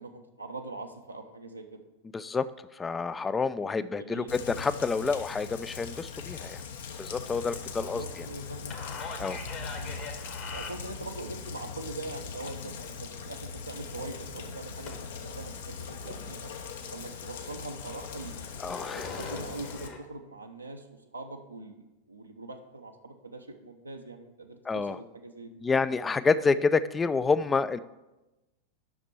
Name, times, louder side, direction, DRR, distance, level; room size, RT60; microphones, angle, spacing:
voice 1, 0.0-1.8 3.7-4.3 7.8-8.9 9.7-10.0 10.5-16.5 16.9-18.3 18.9-20.8 21.1-25.6 26.3-26.5, right 2 dB, 85° right, 3 dB, 0.7 m, -42 dB
voice 2, 2.1-2.5 2.7-6.6 7.0-8.3 9.2-9.4 18.6-19.1 24.7-25.0 25.6-27.8, left 4 dB, 15° left, 15 dB, 0.3 m, -28 dB
Rain, 4.3-19.9, left 5 dB, 60° left, 0.8 m, -41 dB
sound 1, 7.3-11.2 14.9-15.3 15.7-16.3 16.6-16.7 17.1-20.0, left 5 dB, 40° left, 1.3 m, -43 dB
6.0 x 5.9 x 6.8 m, 1.0 s
figure-of-eight pair, 90°, 0 cm